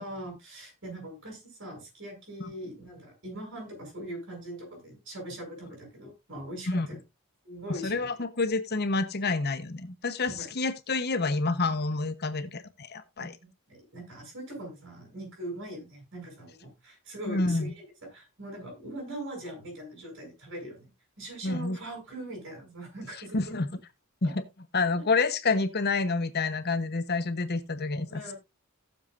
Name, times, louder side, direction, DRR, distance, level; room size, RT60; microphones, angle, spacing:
voice 1, 0.0-7.0 7.4-8.1 10.3-10.5 13.2-17.8 18.1-20.9 21.2-23.5 24.2-24.3 28.1-28.3, right 1 dB, 60° right, 7.6 m, -41 dB
voice 2, 7.7-13.4 17.3-17.7 21.4-21.8 23.3-23.7 24.2-24.4 24.7-28.2, left 3 dB, 50° left, 1.0 m, -28 dB
17.5 x 7.3 x 2.6 m
head